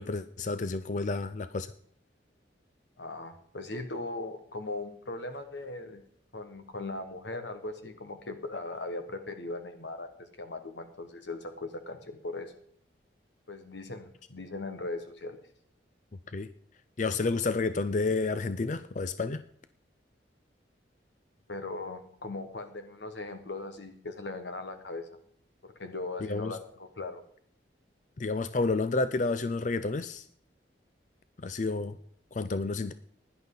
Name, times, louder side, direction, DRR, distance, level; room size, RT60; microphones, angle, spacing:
voice 1, 0.0-1.7 16.3-16.5 17.0-19.4 26.2-26.6 28.2-30.3 31.4-32.0 32.3-32.9, left 3 dB, 40° left, 12 dB, 0.5 m, -30 dB
voice 2, 3.0-6.0 6.3-12.5 13.5-15.4 21.5-25.1 25.6-27.2, left 2 dB, 75° left, 7 dB, 1.4 m, -39 dB
16.5 x 10.5 x 4.0 m, 0.63 s
head